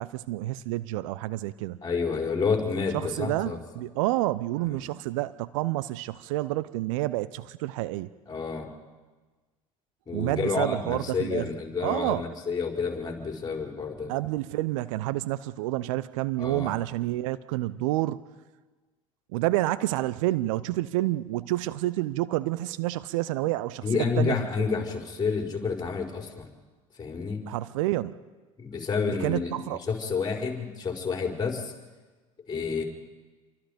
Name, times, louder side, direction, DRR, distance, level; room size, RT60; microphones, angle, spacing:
voice 1, 0.0-1.8 2.9-8.1 10.1-11.4 11.8-12.2 14.1-18.2 19.3-24.4 27.5-28.2 29.1-29.8, right 17 dB, 65° right, 16 dB, 0.8 m, -29 dB
voice 2, 1.8-3.6 4.8-4.9 8.3-8.7 10.1-14.1 16.4-16.7 23.8-26.5 27.0-27.4 28.6-31.7 32.5-32.8, left 5 dB, 25° left, 1 dB, 5.4 m, -29 dB
28.0 x 24.0 x 5.3 m, 1.3 s
figure-of-eight pair, 65°, 18 cm